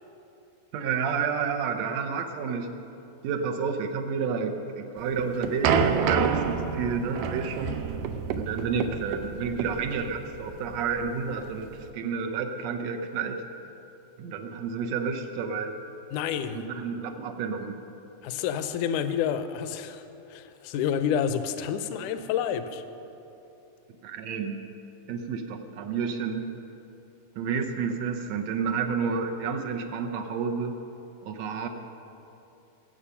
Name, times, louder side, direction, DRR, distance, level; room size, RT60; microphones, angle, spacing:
voice 1, 0.7-2.7 3.2-7.8 8.4-13.4 14.2-15.7 16.5-17.8 24.0-24.7 25.1-26.5 27.4-30.8 31.3-31.7, right 5 dB, 70° right, 5 dB, 1.8 m, -30 dB
sound 1, 5.0-11.9, right 6 dB, 85° right, 2.3 m, -28 dB
voice 2, 16.1-16.7 18.2-22.8, left 8 dB, 80° left, 10 dB, 2.1 m, -29 dB
21.5 x 7.8 x 5.7 m, 2.8 s
omnidirectional pair, 3.7 m